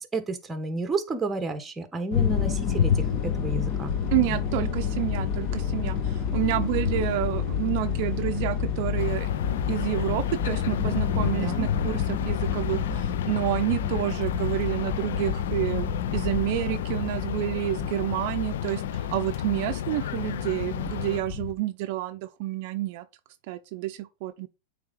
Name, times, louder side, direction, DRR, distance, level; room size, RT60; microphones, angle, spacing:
voice 1, 0.1-3.1 3.4-3.9 11.4-11.7 20.6-20.9, right 3 dB, 15° right, 1.1 m, -31 dB
sound 1, 2.1-21.5, left 7 dB, 50° left, 1.3 m, -29 dB
voice 2, 4.1-9.3 9.7-23.1 23.5-24.5, right 15 dB, 55° right, 0.5 m, -29 dB
sound 2, 9.0-21.2, left 11 dB, 80° left, 0.4 m, -34 dB
8.8 x 3.4 x 3.9 m
supercardioid pair, 140°, 0 cm